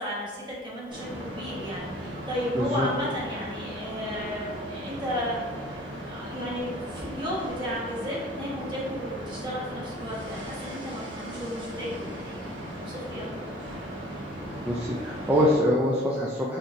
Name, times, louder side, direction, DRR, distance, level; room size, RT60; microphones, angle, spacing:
voice 1, 0.0-5.4 5.8-13.3, equal, 25° right, -6 dB, 1.3 m, -34 dB
sound 1, 0.9-15.6, equal, 90° right, 1.3 m, -37 dB
voice 2, 2.5-2.9 14.6-16.6, equal, 10° right, -5 dB, 0.4 m, -24 dB
4.2 x 3.9 x 2.6 m, 1.5 s
head